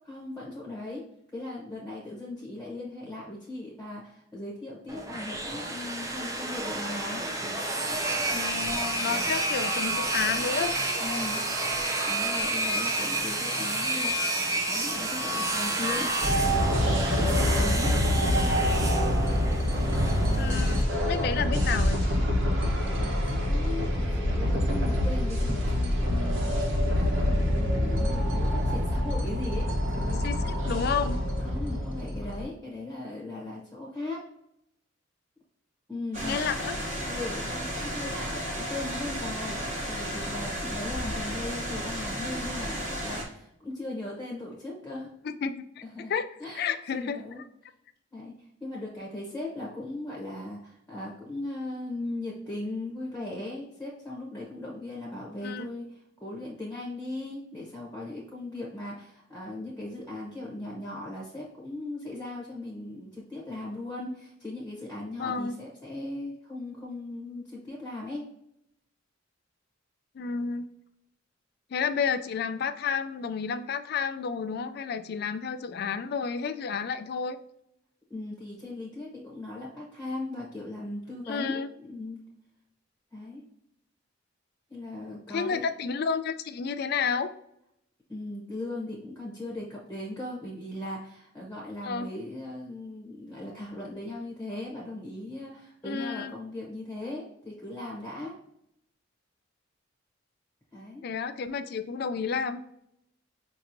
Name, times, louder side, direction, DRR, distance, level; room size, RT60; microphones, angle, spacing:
voice 1, 0.1-1.0 1.3-7.3 9.1-9.2 11.0-11.5 12.1-16.1 16.7-18.6 21.3-21.4 22.9-26.6 27.1-30.2 31.4-34.2 35.9-36.4 37.0-45.1 45.8-46.1 46.4-47.4 48.1-48.3 48.6-68.2 78.1-82.2 83.1-83.4 84.7-85.6 88.1-98.3 100.7-101.0, left 2 dB, 10° left, -4 dB, 0.9 m, -38 dB
sound 1, 4.9-20.8, right 2 dB, 15° right, 0.5 m, -30 dB
voice 2, 8.3-10.7 20.4-22.2 30.2-31.2 36.2-36.8 45.4-45.6 46.1-46.3 46.6-47.2 55.4-55.7 65.2-65.5 70.2-70.7 71.7-77.4 81.3-81.7 85.3-87.3 91.8-92.1 95.8-96.3 101.0-102.6, left 6 dB, 50° left, 11 dB, 0.3 m, -31 dB
sound 2, 16.2-32.4, equal, 75° right, 1.1 m, -26 dB
sound 3, 36.1-43.2, equal, 35° right, 1.1 m, -33 dB
5.2 x 2.9 x 2.6 m, 0.77 s
head